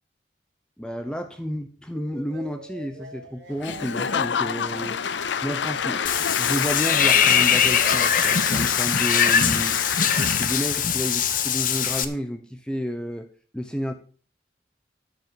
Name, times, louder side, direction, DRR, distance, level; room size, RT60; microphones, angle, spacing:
voice 1, 0.8-5.0 5.4-6.0 6.4-9.8 10.4-13.3 13.5-13.9, equal, 5° left, 6 dB, 1.0 m, -31 dB
sound 1, 1.9-6.9, right 2 dB, 75° right, 3.1 m, -43 dB
Applause / Crowd, 3.6-10.9, left 7 dB, 90° left, 0.6 m, -28 dB
Water / Bathtub (filling or washing), 6.1-12.1, left 7 dB, 50° left, 0.9 m, -21 dB
13.5 x 5.4 x 6.9 m, 0.40 s
head